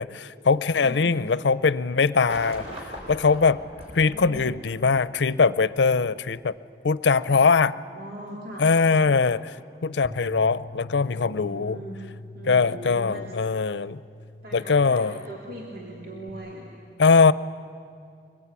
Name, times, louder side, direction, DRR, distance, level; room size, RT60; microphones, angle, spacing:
voice 1, 0.0-2.6 3.1-3.6 3.9-6.5 6.8-7.7 8.6-9.4 9.8-11.8 12.5-14.0 14.5-15.1 17.0-17.3, left 4 dB, 80° left, 17 dB, 0.6 m, -21 dB
voice 2, 0.8-1.1 3.8-4.4 7.2-9.1 11.1-12.0 12.3-13.2 14.4-17.0, right 1 dB, 60° right, -3 dB, 3.3 m, -41 dB
sound 1, 2.1-5.3 6.4-6.5, equal, 35° right, 5.4 m, -40 dB
Bass guitar, 10.0-16.3, left 1 dB, 10° left, 1.7 m, -43 dB
24.5 x 22.5 x 9.7 m, 2.4 s
head